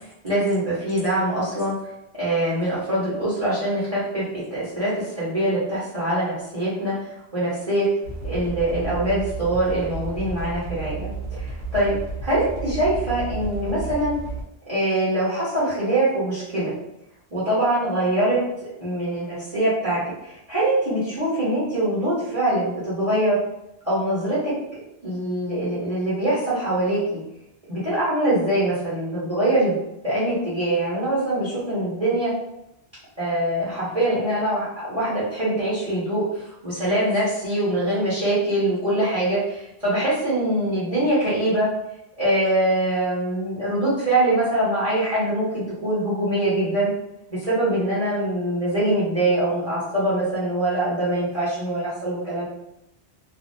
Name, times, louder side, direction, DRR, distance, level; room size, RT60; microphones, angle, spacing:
voice 1, 0.0-1.7 2.2-7.0 7.3-7.9 8.2-11.9 12.2-14.2 14.7-16.7 17.3-18.4 18.8-23.4 23.8-24.5 25.0-27.2 27.7-29.8 30.0-32.3 33.2-41.7 42.2-46.9 47.3-52.4, right 1 dB, 35° right, -11 dB, 1.2 m, -23 dB
sound 1, 8.0-14.4, right 3 dB, 90° right, 1.2 m, -32 dB
2.8 x 2.7 x 2.6 m, 0.84 s
omnidirectional pair, 1.1 m